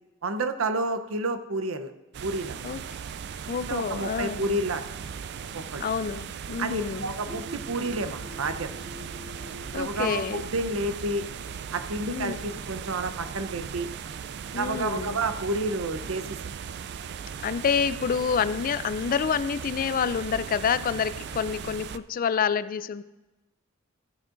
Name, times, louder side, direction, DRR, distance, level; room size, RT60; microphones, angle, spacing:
voice 1, 0.2-1.9 2.2-2.6 3.7-4.8 5.5-5.9 6.6-8.7 9.7-11.2 11.7-13.9 14.5-16.4, right 2 dB, 85° right, 9 dB, 0.8 m, -30 dB
sound 1, 2.1-22.0, right 7 dB, 55° right, 0.4 m, -38 dB
voice 2, 3.5-4.6 5.8-7.1 9.7-10.4 12.1-12.4 14.5-15.2 17.4-23.0, left 6 dB, 45° left, 15 dB, 0.3 m, -28 dB
sound 2, 7.3-12.8, left 3 dB, 15° right, 3.1 m, -47 dB
14.5 x 10.0 x 2.6 m, 1.1 s
head